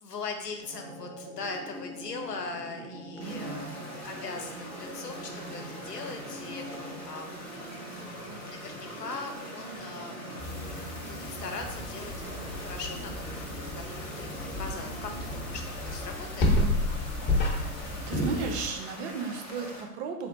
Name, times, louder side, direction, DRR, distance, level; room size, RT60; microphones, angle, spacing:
voice 1, 0.0-7.5 8.2-10.8 11.1-16.5, left 4 dB, 90° left, 4 dB, 0.7 m, -40 dB
sound 1, 0.6-15.7, right 1 dB, 90° right, 0.7 m, -43 dB
sound 2, 3.2-19.8, left 1 dB, 5° left, 0.3 m, -44 dB
voice 2, 3.2-3.8 17.3-17.5 18.1-20.3, right 5 dB, 45° right, 4 dB, 0.6 m, -35 dB
sound 3, 10.4-18.7, left 1 dB, 25° left, 0.7 m, -31 dB
3.5 x 2.3 x 3.9 m, 0.87 s
figure-of-eight pair, 95°, 47 cm